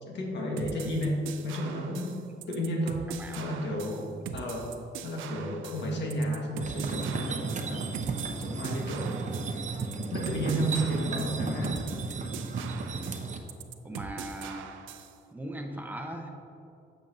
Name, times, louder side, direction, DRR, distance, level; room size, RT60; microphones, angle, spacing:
voice 1, 0.1-7.9 8.4-9.2 10.1-11.8, equal, 65° left, -1 dB, 1.5 m, -32 dB
sound 1, 0.6-15.2, right 8 dB, 80° right, 0.5 m, -42 dB
sound 2, 6.6-13.4, right 4 dB, 40° right, 0.7 m, -34 dB
voice 2, 13.8-14.7 15.3-16.3, right 1 dB, 10° right, 2 dB, 0.9 m, -39 dB
8.6 x 6.8 x 2.7 m, 2.8 s
cardioid pair, 90°, 20 cm